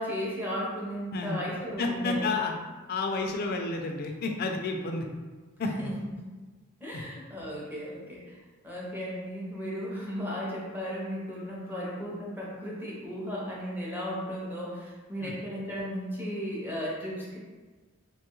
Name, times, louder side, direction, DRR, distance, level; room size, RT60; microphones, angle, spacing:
voice 1, 0.0-2.2 5.6-5.9 6.8-8.3 8.6-17.4, equal, 10° right, -6 dB, 0.6 m, -35 dB
voice 2, 1.8-2.5 2.9-5.1 5.6-5.9 6.9-7.0 15.2-15.3, left 3 dB, 45° left, 3 dB, 0.3 m, -30 dB
3.0 x 2.3 x 2.9 m, 1.3 s
head